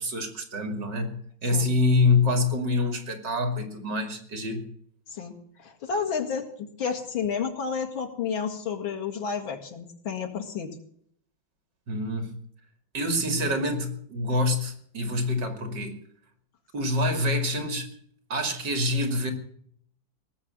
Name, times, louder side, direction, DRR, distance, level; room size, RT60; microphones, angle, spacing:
voice 1, 0.0-4.6 11.9-12.4 12.9-16.0 16.7-17.9 18.3-19.3, left 2 dB, 60° right, 7 dB, 3.1 m, -26 dB
voice 2, 5.1-10.8, left 6 dB, 90° left, 3 dB, 2.8 m, -31 dB
18.5 x 7.6 x 8.8 m, 0.63 s
omnidirectional pair, 2.1 m